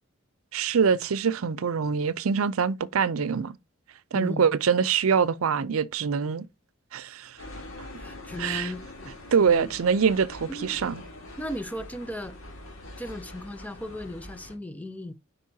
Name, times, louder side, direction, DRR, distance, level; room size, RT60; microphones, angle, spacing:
voice 1, 0.5-3.6 4.1-6.5 6.9-7.4 8.4-8.7 9.3-11.0, right 6 dB, 85° right, 0.5 m, -24 dB
voice 2, 4.1-4.5 8.0-9.1 9.4-9.7 10.5-10.8 11.4-12.4 13.0-15.1, left 1 dB, 5° left, 0.5 m, -36 dB
sound 1, 7.4-14.6, left 1 dB, 65° left, 3.0 m, -44 dB
8.4 x 5.4 x 2.8 m
head